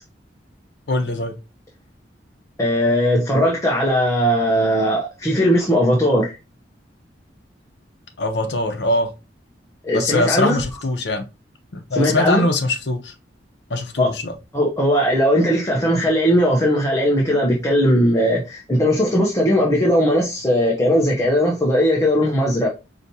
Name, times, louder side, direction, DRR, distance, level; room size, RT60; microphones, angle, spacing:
voice 1, 0.9-1.4 8.2-9.1 9.9-11.2 11.7-13.1 13.7-14.3, left 2 dB, 70° left, 0.8 m, -22 dB
voice 2, 2.6-6.3 9.8-10.6 11.9-12.4 14.0-14.1 14.5-22.7, equal, 15° left, 0.8 m, -18 dB
5.0 x 2.8 x 2.8 m
head